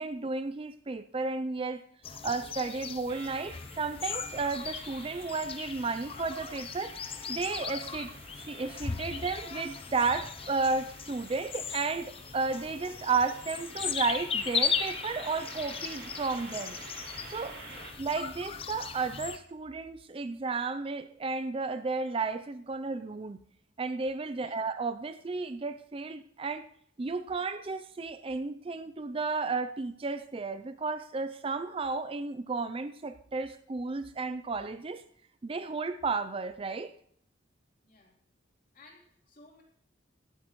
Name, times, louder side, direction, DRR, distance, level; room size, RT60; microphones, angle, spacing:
voice 1, 0.0-1.8 2.1-6.9 7.3-16.8 17.3-17.6 18.0-23.4 23.8-26.7 27.0-35.0 35.4-36.9, right 4 dB, 30° right, 12 dB, 0.4 m, -33 dB
sound 1, 2.0-19.4, left 6 dB, 30° left, 0.6 m, -37 dB
sound 2, 3.1-17.9, right 3 dB, 75° right, 6.6 m, -49 dB
voice 2, 17.6-17.9 24.4-24.6 37.8-38.2 38.7-39.6, left 2 dB, 45° left, -2 dB, 3.4 m, -57 dB
17.0 x 12.5 x 3.1 m, 0.65 s
head